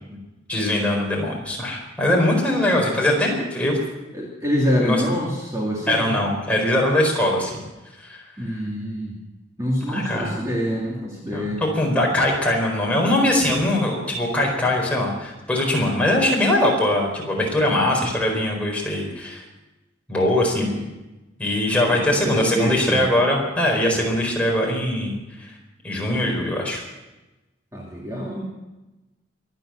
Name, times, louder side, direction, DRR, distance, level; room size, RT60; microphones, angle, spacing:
voice 1, 0.5-3.8 4.8-5.0 5.9-7.6 8.0-8.2 9.9-10.4 11.3-11.4 11.7-19.4 20.1-20.8 21.4-25.1 25.4-25.5 25.8-26.8, left 1 dB, 5° left, -2 dB, 4.5 m, -21 dB
voice 2, 4.1-6.1 8.4-9.1 9.6-11.6 20.6-20.8 21.9-23.0 27.7-28.4, equal, 15° right, -4 dB, 2.6 m, -26 dB
24.0 x 9.4 x 6.5 m, 1.1 s
head